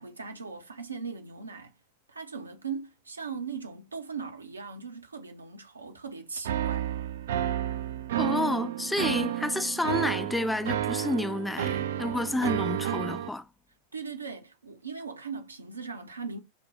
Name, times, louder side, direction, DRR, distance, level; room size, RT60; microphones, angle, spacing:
voice 1, 0.0-1.7 2.1-6.9 13.9-16.4, right 5 dB, 80° right, 0.7 m, -39 dB
sound 1, 6.4-13.3, right 11 dB, 60° right, 0.4 m, -31 dB
voice 2, 8.2-13.5, left 2 dB, 5° left, 0.4 m, -30 dB
5.2 x 2.2 x 3.2 m
figure-of-eight pair, 90°, 0 cm